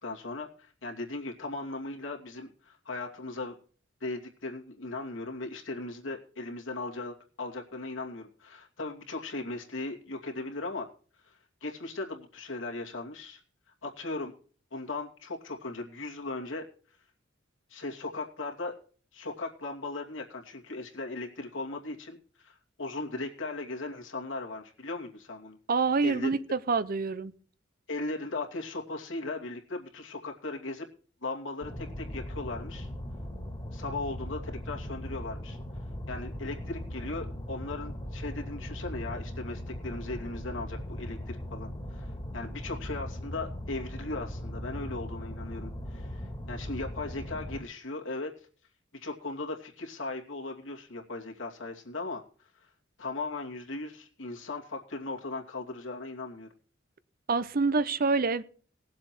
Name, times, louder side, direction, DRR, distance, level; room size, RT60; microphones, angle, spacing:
voice 1, 0.0-3.5 4.0-10.9 11.2-13.4 13.8-14.3 14.7-16.7 17.7-18.7 19.1-25.6 26.0-26.3 27.9-30.9 31.2-32.9 33.7-35.6 36.1-48.3 49.0-52.2 53.0-56.5, left 2 dB, 80° left, 2.6 m, -38 dB
voice 2, 25.7-27.3 57.3-58.4, right 4 dB, 50° right, 0.7 m, -26 dB
sound 1, 31.6-47.6, equal, 25° left, 1.9 m, -39 dB
19.0 x 7.5 x 4.5 m
head